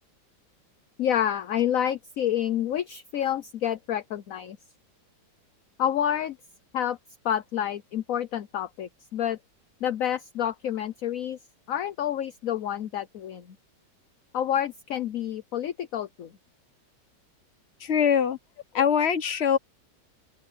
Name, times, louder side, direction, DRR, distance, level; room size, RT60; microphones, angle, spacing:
voice 1, 1.0-4.6 5.8-6.4 6.7-7.0 7.2-9.4 9.8-11.4 11.7-13.5 14.3-16.3 18.8-18.9, left 10 dB, 55° left, 1.1 m, -28 dB
voice 2, 17.8-18.4 18.7-19.6, left 7 dB, 40° left, 1.3 m, -22 dB
open air
omnidirectional pair, 2.0 m